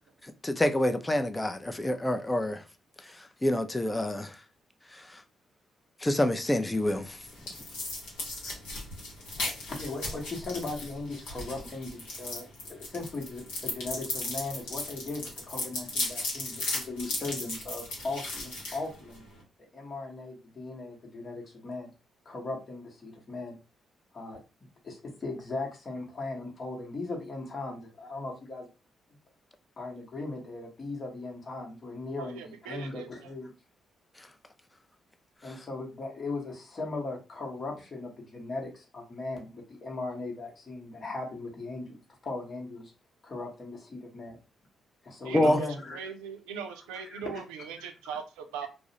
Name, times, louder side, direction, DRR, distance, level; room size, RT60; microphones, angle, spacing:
voice 1, 0.4-2.6 3.4-4.3 4.9-5.0 6.0-7.2 45.3-45.6, left 1 dB, 20° left, 0.4 m, -27 dB
sound 1, 6.7-19.4, left 2 dB, 80° left, 0.8 m, -37 dB
voice 2, 9.6-19.2 19.7-21.9 22.2-23.6 24.1-24.4 24.8-28.7 29.8-33.5 35.4-42.9 43.2-44.4 45.0-46.1 47.1-47.4, left 3 dB, 45° left, 0.9 m, -38 dB
voice 3, 32.2-33.1 45.2-48.7, right 7 dB, 80° right, 0.4 m, -40 dB
2.3 x 2.0 x 2.8 m
hypercardioid pair, 45°, 0 cm